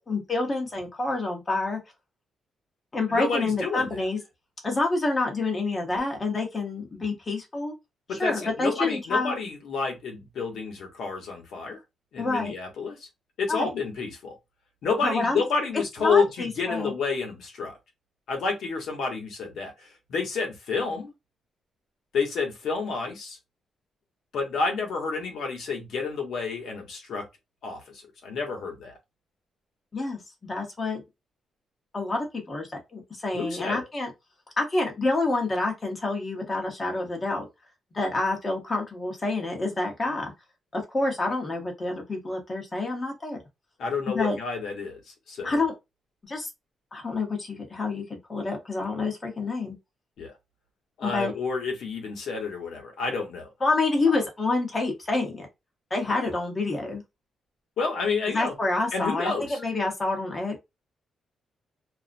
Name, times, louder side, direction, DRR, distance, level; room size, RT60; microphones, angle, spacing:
voice 1, 0.0-1.8 2.9-4.2 4.6-7.7 8.1-9.4 12.2-12.5 13.5-13.7 15.0-15.4 16.0-16.9 29.9-31.0 31.9-34.1 34.6-37.5 37.9-40.3 40.7-43.4 44.1-44.4 45.4-45.7 46.2-46.5 46.9-48.0 48.3-49.7 51.0-51.3 53.6-55.5 55.9-57.0 58.3-60.5, left 2 dB, 25° left, 0.9 m, -28 dB
voice 2, 3.1-4.0 8.1-11.8 12.1-13.0 13.4-14.3 14.8-17.7 18.3-21.1 22.1-23.4 24.3-27.2 27.6-27.8 28.2-28.9 33.3-33.9 43.8-45.0 45.3-45.6 50.2-50.3 51.0-53.5 54.1-54.2 56.0-56.3 57.8-58.5 58.9-59.6, left 4 dB, 75° left, 0.9 m, -29 dB
2.4 x 2.0 x 2.5 m
cardioid pair, 120°, 0 cm